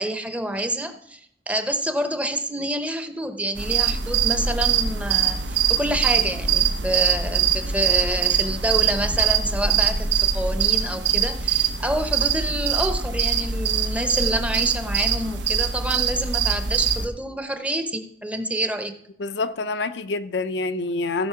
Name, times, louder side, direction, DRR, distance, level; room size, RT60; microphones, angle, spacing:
voice 1, 0.0-10.1 10.3-19.0, right 1 dB, 10° right, 0.7 m, -27 dB
sound 1, 3.6-17.1, right 7 dB, 85° right, 1.0 m, -23 dB
voice 2, 19.2-21.3, left 3 dB, 75° left, 0.6 m, -26 dB
15.5 x 5.3 x 5.7 m
head